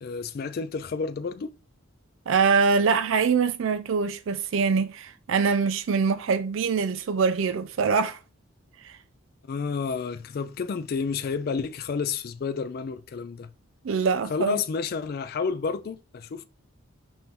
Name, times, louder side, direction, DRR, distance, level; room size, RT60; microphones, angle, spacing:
voice 1, 0.0-1.5 9.5-13.5 14.3-16.4, left 5 dB, 45° left, 0.3 m, -30 dB
voice 2, 2.3-8.2 8.8-9.0 13.8-14.6, right 5 dB, 65° right, 0.4 m, -24 dB
4.3 x 2.6 x 3.6 m
head